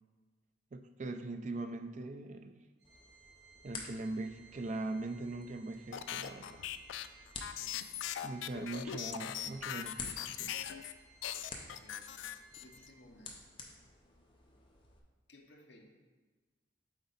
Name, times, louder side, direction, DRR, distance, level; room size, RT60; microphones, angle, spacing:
voice 1, 0.7-2.6 3.6-6.6 8.2-10.6, right 2 dB, 40° right, 7 dB, 0.3 m, -41 dB
sound 1, 2.8-15.0, left 3 dB, 25° left, 0.6 m, -52 dB
Organ, 2.8-13.4, right 5 dB, 55° right, 1.1 m, -62 dB
sound 2, 5.9-10.9 11.2-12.9, left 10 dB, 85° left, 0.3 m, -40 dB
voice 2, 7.5-8.0 11.7-12.2 12.6-13.4 15.3-16.0, left 1 dB, 70° left, 2 dB, 0.9 m, -59 dB
7.9 x 4.1 x 3.9 m, 1.3 s
head